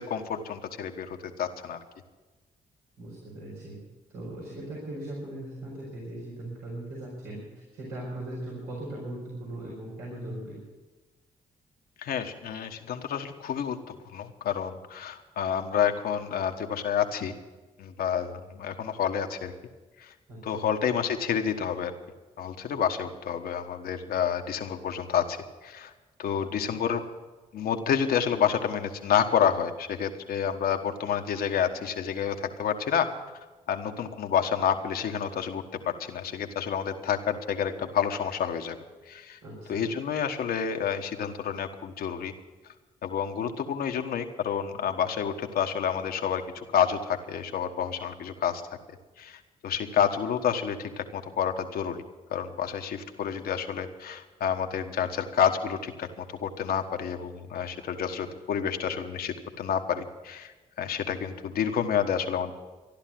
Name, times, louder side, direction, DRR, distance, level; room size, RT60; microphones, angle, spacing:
voice 1, 0.0-1.8 12.0-17.3 17.8-19.5 20.0-20.1 20.4-21.9 22.4-25.9 26.2-27.0 27.5-33.1 33.7-38.8 39.1-39.4 39.7-42.3 43.0-48.6 49.2-52.0 52.3-62.5, left 8 dB, 70° left, 6 dB, 1.3 m, -29 dB
voice 2, 3.0-3.7 4.1-7.4 7.7-10.6 20.3-20.7 39.4-39.9, right 1 dB, 85° right, -6 dB, 4.8 m, -39 dB
13.5 x 11.5 x 7.6 m, 1.2 s
supercardioid pair, 55°, 16 cm